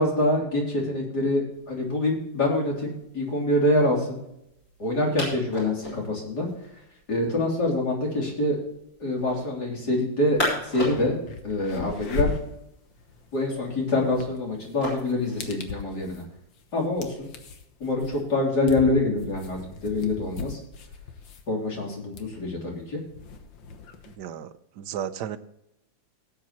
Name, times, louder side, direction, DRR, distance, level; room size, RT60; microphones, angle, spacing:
voice 1, 0.0-4.2 4.8-6.5 7.1-8.6 9.0-10.4 10.7-11.2 11.4-12.3 13.3-16.2 16.7-17.3 17.8-20.6 21.5-23.0, left 1 dB, 60° left, -1 dB, 3.9 m, -25 dB
sound 1, 1.5-16.9, left 1 dB, 45° left, 5.9 m, -39 dB
sound 2, 10.4-10.5 10.8-24.2, left 4 dB, 90° left, 1.9 m, -38 dB
voice 2, 24.2-24.5 24.8-25.4, right 9 dB, 70° right, 11 dB, 1.3 m, -33 dB
17.5 x 8.5 x 3.0 m, 0.80 s
omnidirectional pair, 2.0 m